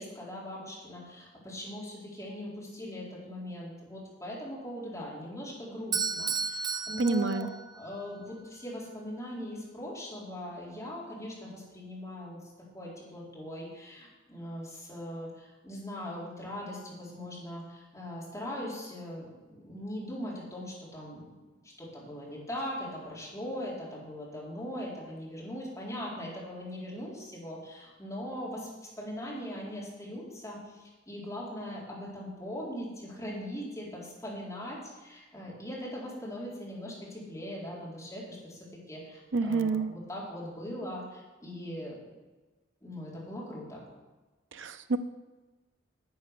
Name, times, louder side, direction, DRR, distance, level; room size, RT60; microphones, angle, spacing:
voice 1, 0.0-12.4 12.7-21.2 21.6-42.0 42.8-43.8, equal, 15° left, -6 dB, 3.9 m, -40 dB
Bell / Doorbell, 5.9-8.0, right 5 dB, 20° right, 0.5 m, -33 dB
voice 2, 7.0-7.5 39.3-39.9 44.6-45.0, right 3 dB, 65° right, 10 dB, 0.7 m, -28 dB
10.5 x 8.7 x 6.7 m, 1.2 s
head